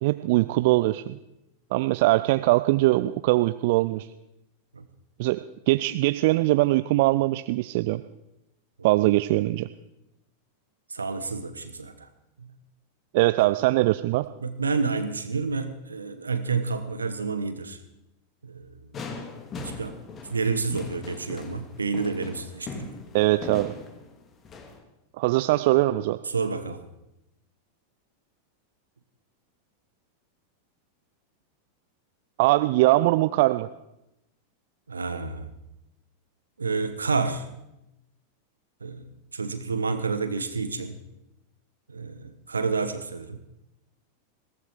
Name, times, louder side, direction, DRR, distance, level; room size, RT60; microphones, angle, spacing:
voice 1, 0.0-1.2 1.7-4.1 5.2-5.4 5.7-8.0 8.8-9.7 13.1-14.3 23.1-23.7 25.2-26.2 32.4-33.7, right 19 dB, 50° right, 13 dB, 0.4 m, -22 dB
voice 2, 10.9-12.1 12.4-12.5 13.4-13.5 14.4-17.8 18.4-18.9 19.6-20.0 20.3-22.9 26.3-26.8 34.9-35.5 36.6-37.5 38.8-41.0 41.9-43.4, right 4 dB, 75° right, 12 dB, 1.2 m, -29 dB
sound 1, 18.9-24.8, left 4 dB, 25° left, 2.2 m, -40 dB
17.5 x 14.0 x 4.8 m, 0.88 s
figure-of-eight pair, 90°, 0 cm